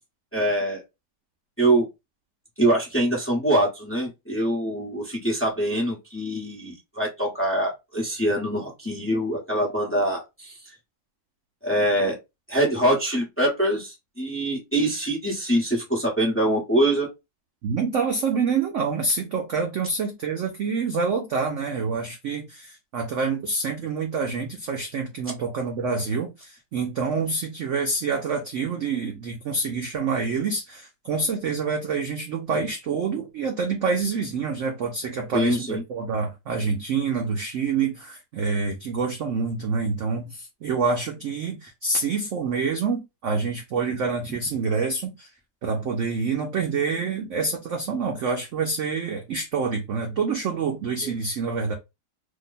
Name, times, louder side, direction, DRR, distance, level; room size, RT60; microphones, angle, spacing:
voice 1, 0.3-0.8 1.6-1.9 2.6-10.8 11.6-12.2 12.5-17.1 35.3-35.8 51.0-51.1, right 1 dB, 10° left, 0.8 m, -24 dB
voice 2, 17.6-45.3 45.6-51.7, right 4 dB, 65° right, 0.7 m, -27 dB
2.9 x 2.2 x 3.9 m
omnidirectional pair, 1.9 m